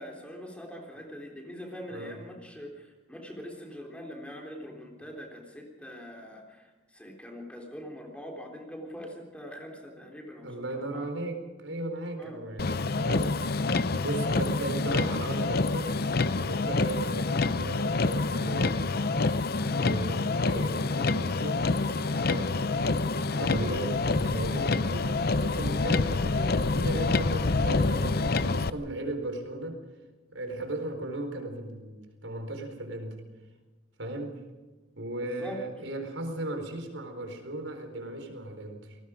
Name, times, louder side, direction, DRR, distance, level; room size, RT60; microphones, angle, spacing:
voice 1, 0.0-10.6 10.9-11.1 12.2-12.4 13.9-14.1 35.2-35.6, equal, 5° left, 1 dB, 3.5 m, -43 dB
voice 2, 10.4-13.7 14.0-16.0 16.4-19.3 19.8-21.7 22.3-22.6 23.3-29.8 30.3-33.2 34.0-34.4 35.0-39.0, right 1 dB, 80° right, 5 dB, 4.2 m, -36 dB
Motor vehicle (road), 12.6-28.7, left 3 dB, 50° left, 0.7 m, -27 dB
28.5 x 19.5 x 5.1 m, 1.3 s
head